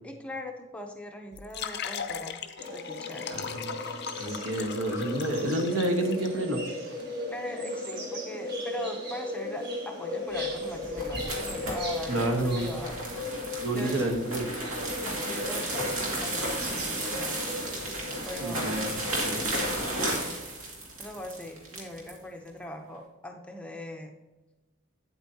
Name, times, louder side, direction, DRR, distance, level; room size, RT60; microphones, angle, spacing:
voice 1, 0.0-2.4 2.7-3.4 7.3-14.3 15.0-17.5 18.3-18.8 19.3-20.4 21.0-24.2, left 1 dB, 5° left, 2 dB, 0.6 m, -41 dB
sound 1, 1.3-6.3, left 7 dB, 50° left, 0.5 m, -38 dB
sound 2, 2.6-20.0, left 2 dB, 50° right, 1.6 m, -37 dB
voice 2, 3.3-3.8 4.2-6.6 12.1-12.7 13.6-14.5 18.4-19.4, right 1 dB, 70° right, 4 dB, 1.2 m, -29 dB
sound 3, 10.4-22.2, right 1 dB, 85° right, 2.1 m, -33 dB
8.7 x 8.0 x 2.8 m, 1.1 s
head